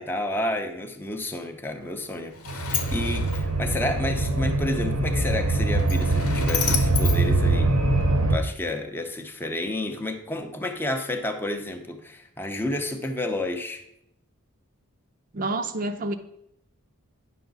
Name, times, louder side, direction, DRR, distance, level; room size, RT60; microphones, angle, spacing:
voice 1, 0.0-7.7 8.3-13.8, left 1 dB, 10° left, 4 dB, 0.6 m, -30 dB
Sliding door, 1.8-8.2, left 7 dB, 85° left, 1.0 m, -34 dB
sound 1, 2.5-8.4, right 2 dB, 85° right, 1.0 m, -23 dB
voice 2, 15.3-16.1, right 2 dB, 40° right, 7 dB, 0.5 m, -28 dB
9.8 x 5.8 x 3.9 m, 0.78 s
head